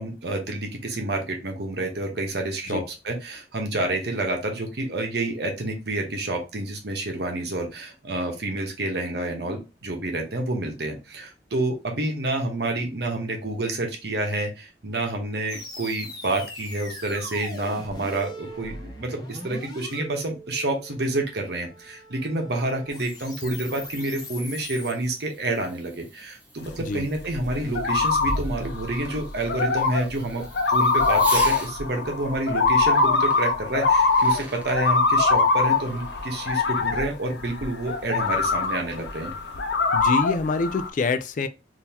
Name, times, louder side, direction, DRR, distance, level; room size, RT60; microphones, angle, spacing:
voice 1, 0.0-30.4 30.7-39.3, right 2 dB, 65° right, 1.0 m, -28 dB
sound 1, 15.5-24.9, left 1 dB, 25° left, 1.0 m, -40 dB
Fireworks, 23.1-31.7 33.3-33.4 33.9-34.8, right 1 dB, 10° right, 0.7 m, -42 dB
sound 2, 26.7-40.9, left 3 dB, 75° left, 0.7 m, -23 dB
voice 2, 39.9-41.5, left 4 dB, 45° left, 0.3 m, -26 dB
3.7 x 2.8 x 2.8 m
head